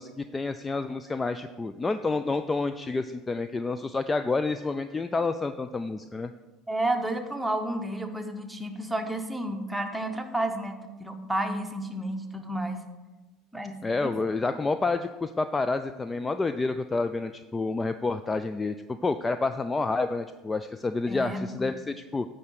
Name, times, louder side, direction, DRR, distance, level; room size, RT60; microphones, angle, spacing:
voice 1, 0.0-6.3 13.8-18.7 19.0-22.3, left 3 dB, 20° left, 10 dB, 0.3 m, -29 dB
voice 2, 6.7-12.8 13.5-14.1 21.1-21.7, right 1 dB, 5° right, 4 dB, 1.0 m, -31 dB
9.6 x 3.8 x 6.5 m, 1.2 s
figure-of-eight pair, 70°, 0 cm